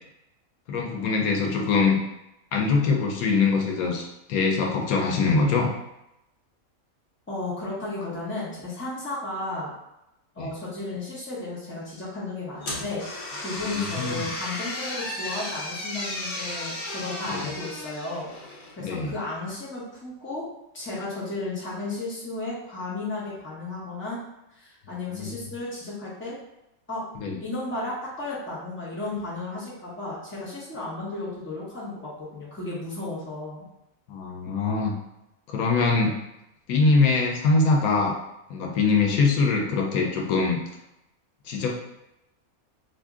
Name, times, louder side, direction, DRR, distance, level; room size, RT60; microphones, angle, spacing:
voice 1, 0.7-2.0 2.5-5.7 10.4-10.5 13.6-14.3 17.3-17.5 18.8-19.1 24.9-25.3 27.2-27.4 34.1-34.9 35.5-36.1 36.7-38.1 38.5-40.6 41.5-41.7, left 4 dB, 85° left, 1 dB, 1.1 m, -23 dB
voice 2, 7.3-9.7 10.3-18.3 18.7-20.5 20.7-24.2 24.6-26.4 26.9-27.1 27.4-33.6, left 2 dB, 10° left, -7 dB, 0.8 m, -34 dB
sound 1, 12.6-18.8, left 2 dB, 60° left, 1.1 m, -34 dB
2.8 x 2.6 x 3.5 m, 0.87 s
omnidirectional pair, 1.5 m